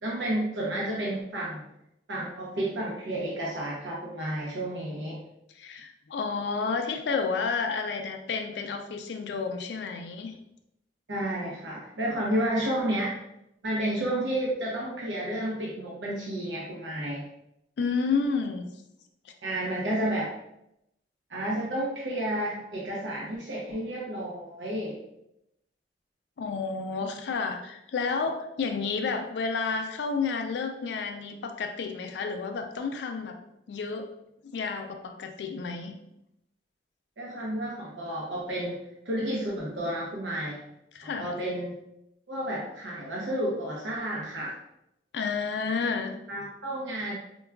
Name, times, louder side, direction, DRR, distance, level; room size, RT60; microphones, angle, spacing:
voice 1, 0.0-1.6 2.1-5.2 11.1-13.2 13.6-17.2 19.4-20.3 21.3-25.0 37.2-40.6 41.0-41.7 42.3-44.5 46.3-47.1, right 1 dB, 90° right, -4 dB, 0.7 m, -31 dB
voice 2, 5.5-10.4 17.8-18.7 19.2-19.3 26.4-33.4 33.7-34.1 34.5-36.0 40.9-41.3 45.1-46.2, left 4 dB, 70° left, 5 dB, 0.3 m, -31 dB
4.5 x 2.2 x 2.2 m, 0.83 s
head